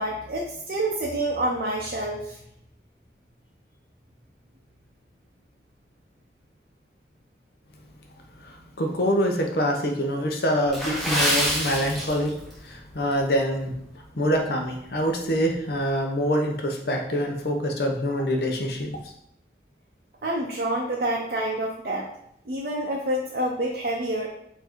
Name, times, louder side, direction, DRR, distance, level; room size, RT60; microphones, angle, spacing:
voice 1, 0.0-2.4 20.2-22.1 22.5-24.3, right 1 dB, 55° right, -2 dB, 0.6 m, -27 dB
voice 2, 8.4-12.3 12.6-13.7 14.1-18.9, equal, 60° left, 2 dB, 0.7 m, -25 dB
Water / Splash splatter, 10.7-12.6 12.9-13.1 13.7-13.9 14.4-14.5, equal, ahead, 1.0 m, -26 dB
4.3 x 2.7 x 4.4 m, 0.74 s
head